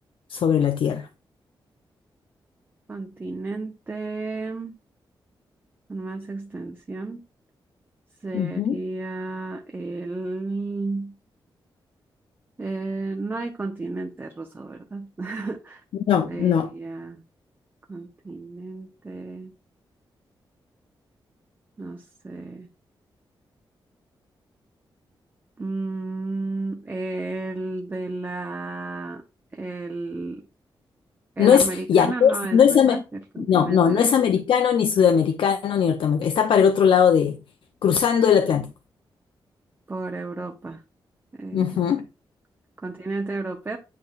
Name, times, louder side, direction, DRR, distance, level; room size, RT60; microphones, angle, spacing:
voice 1, 0.3-1.1 8.3-8.8 16.1-16.7 31.4-33.0 33.4-37.4 37.8-38.7 41.5-42.1, left 7 dB, 80° left, 0.5 m, -19 dB
voice 2, 2.9-4.8 5.9-7.2 8.2-11.1 12.6-15.8 16.3-17.2 17.9-19.5 21.8-22.7 25.6-29.2 29.5-30.4 31.4-34.1 39.9-40.8 41.4-42.0 42.8-43.8, right 3 dB, 25° right, 0.8 m, -32 dB
9.4 x 4.8 x 2.4 m
wide cardioid pair, 120°, 9 cm